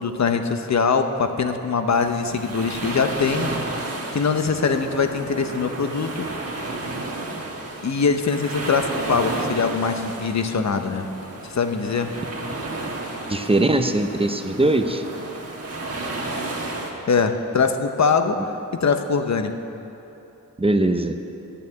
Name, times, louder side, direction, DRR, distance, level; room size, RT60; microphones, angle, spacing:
voice 1, 0.0-3.5 4.1-6.3 7.8-11.1 11.4-12.1 17.1-19.5, left 5 dB, 60° left, 7 dB, 0.8 m, -22 dB
sound 1, 1.9-16.9, right 2 dB, 50° right, 1.6 m, -32 dB
voice 2, 13.3-15.0 18.4-18.5 20.6-21.2, right 2 dB, 20° right, 7 dB, 0.6 m, -21 dB
11.0 x 6.8 x 9.3 m, 2.9 s
wide cardioid pair, 100°, 32 cm